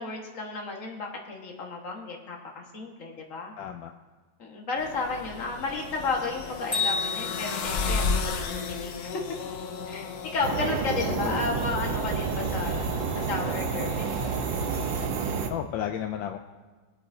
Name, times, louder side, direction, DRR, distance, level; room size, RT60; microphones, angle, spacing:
voice 1, 0.0-3.5 4.4-9.0 9.8-14.5, left 3 dB, 40° left, 0 dB, 1.9 m, -33 dB
voice 2, 3.6-3.9 11.1-11.4 12.9-13.0 15.5-16.4, left 10 dB, 75° left, 5 dB, 1.3 m, -33 dB
sound 1, 4.8-15.1, left 4 dB, 60° left, 1.2 m, -34 dB
Bell, 6.7-8.7, left 4 dB, 15° left, 3.0 m, -32 dB
sound 2, 10.4-15.5, right 5 dB, 70° right, 1.6 m, -29 dB
24.0 x 8.3 x 2.7 m, 1.3 s
omnidirectional pair, 2.1 m